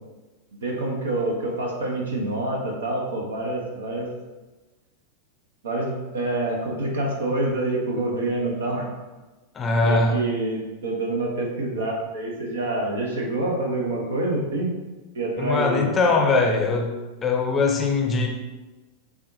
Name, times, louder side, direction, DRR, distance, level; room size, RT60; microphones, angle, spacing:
voice 1, 0.6-4.1 5.6-8.9 9.8-14.7 15.1-15.9, right 2 dB, 65° right, 0 dB, 0.9 m, -26 dB
voice 2, 9.5-10.2 15.4-16.9 17.2-18.3, left 3 dB, 20° left, 1 dB, 0.6 m, -21 dB
7.1 x 2.4 x 2.7 m, 1.2 s
figure-of-eight pair, 90°, 0 cm